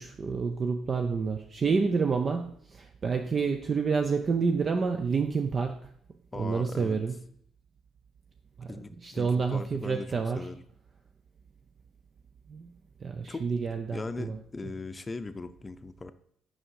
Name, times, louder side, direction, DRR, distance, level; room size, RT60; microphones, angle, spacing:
voice 1, 0.0-5.8 6.3-7.2 8.6-8.8 9.0-10.5 12.5-12.7 13.0-14.4, right 5 dB, 45° right, 4 dB, 0.6 m, -29 dB
voice 2, 6.3-7.0 8.7-10.6 13.3-13.5 13.7-16.1, left 3 dB, 25° left, 11 dB, 0.6 m, -39 dB
6.3 x 5.1 x 4.7 m, 0.66 s
hypercardioid pair, 55°, 0 cm